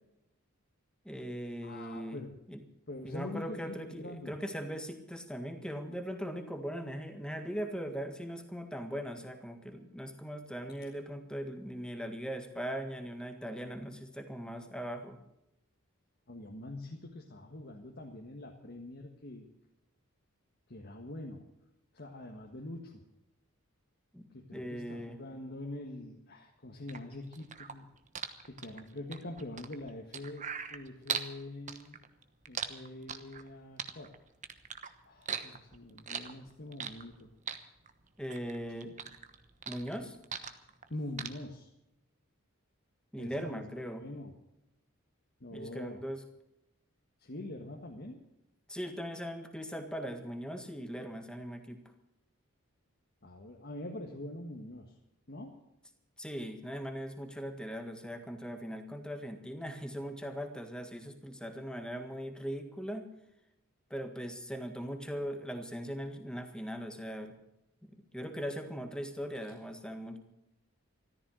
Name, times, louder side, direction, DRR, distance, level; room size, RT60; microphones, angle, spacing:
voice 1, 1.0-2.2 2.5-2.6 3.0-15.2 24.1-25.2 38.2-39.0 39.7-40.2 43.1-44.0 45.5-46.2 48.7-51.8 56.2-63.1 63.9-67.3 67.8-70.2, equal, 5° left, 6 dB, 1.7 m, -40 dB
voice 2, 1.6-2.3 2.9-4.4 10.7-10.8 16.3-19.5 20.7-21.5 21.9-23.0 24.3-27.9 28.4-32.0 32.5-34.1 35.0-37.3 40.9-41.7 43.2-43.7 44.0-44.4 45.4-46.0 47.2-48.2 53.2-54.9 55.3-55.6, left 1 dB, 50° left, 1 dB, 1.7 m, -44 dB
sound 1, 26.9-31.3 31.7-33.5 33.8-34.9 35.2-37.2 37.5-38.6 38.8-40.9 41.2-41.3, right 7 dB, 35° right, 1.2 m, -39 dB
14.0 x 14.0 x 6.4 m, 0.86 s
head